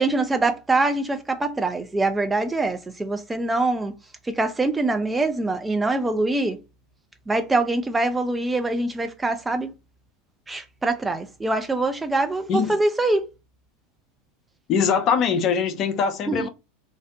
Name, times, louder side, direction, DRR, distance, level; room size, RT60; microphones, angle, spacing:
voice 1, 0.0-3.9 4.2-6.6 7.3-9.7 10.5-13.3 16.3-16.5, right 2 dB, 10° right, 0.5 m, -24 dB
voice 2, 14.7-16.5, left 6 dB, 40° left, 0.6 m, -22 dB
2.6 x 2.1 x 3.7 m
figure-of-eight pair, 85°, 0 cm